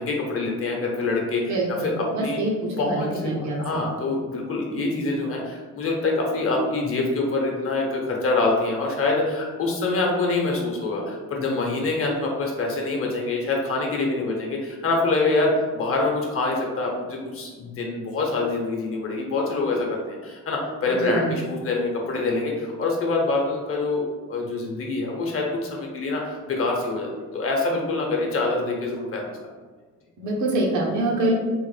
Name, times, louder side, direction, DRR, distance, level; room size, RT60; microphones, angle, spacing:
voice 1, 0.0-1.5 2.0-2.4 2.8-29.4, left 3 dB, 45° left, -1 dB, 0.9 m, -25 dB
voice 2, 1.5-3.8 4.7-4.9 20.9-21.3 30.2-31.3, right 2 dB, 75° right, -2 dB, 0.8 m, -26 dB
3.5 x 2.1 x 3.2 m, 1.4 s
cardioid pair, 90°, 30 cm